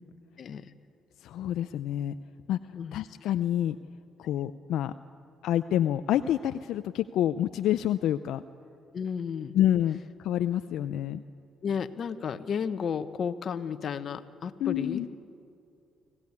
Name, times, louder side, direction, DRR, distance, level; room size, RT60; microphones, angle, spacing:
voice 1, 1.2-2.1 2.5-2.6 2.9-3.8 4.2-4.9 5.4-8.4 9.5-11.2 14.6-15.1, left 11 dB, 80° left, 10 dB, 0.5 m, -28 dB
voice 2, 8.9-9.5 11.6-15.1, left 7 dB, 55° left, 11 dB, 1.1 m, -33 dB
25.0 x 16.0 x 9.7 m, 2.5 s
cardioid pair, 95°, 0 cm